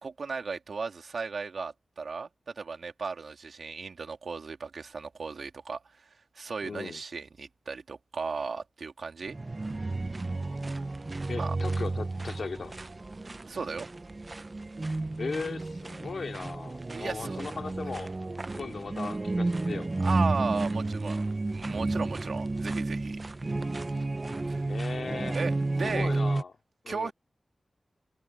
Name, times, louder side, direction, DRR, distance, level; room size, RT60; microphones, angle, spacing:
voice 1, 0.0-9.4 11.3-11.6 13.5-13.9 16.9-17.4 20.0-23.2 24.4-24.6 25.3-25.5 25.8-26.1 26.9-27.1, right 4 dB, 75° right, 3.0 m, -36 dB
voice 2, 6.6-7.0 11.3-12.8 15.2-18.1 18.5-19.9 24.7-25.4 25.8-26.5 26.8-27.1, left 4 dB, 75° left, 2.5 m, -37 dB
sound 1, 9.3-26.4, right 2 dB, 35° right, 0.6 m, -32 dB
wide cardioid pair, 75°, 0 cm